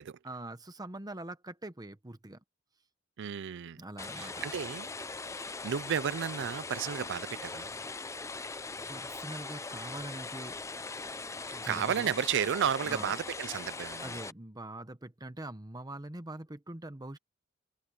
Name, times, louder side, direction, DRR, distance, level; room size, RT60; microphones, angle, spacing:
voice 1, 0.2-2.4 3.8-4.4 8.9-10.6 11.5-12.1 12.8-13.1 14.0-17.2, right 1 dB, 20° right, 1.1 m, -43 dB
voice 2, 3.2-3.8 4.1-4.9 5.4-7.7 11.5-14.2, right 8 dB, 60° right, 0.4 m, -33 dB
sound 1, 4.0-14.3, left 3 dB, 15° left, 0.6 m, -41 dB
head